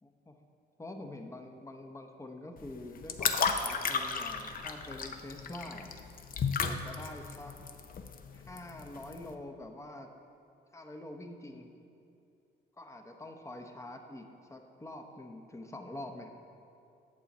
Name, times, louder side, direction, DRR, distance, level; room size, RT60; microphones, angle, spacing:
voice 1, 0.0-0.3 0.8-5.9 6.6-7.5 8.3-10.1 10.7-11.7 12.8-16.3, left 1 dB, 15° left, 4 dB, 0.8 m, -46 dB
sound 1, 2.6-9.3, left 5 dB, 45° left, 0.6 m, -34 dB
8.6 x 7.1 x 4.2 m, 2.6 s
cardioid pair, 90°, 20 cm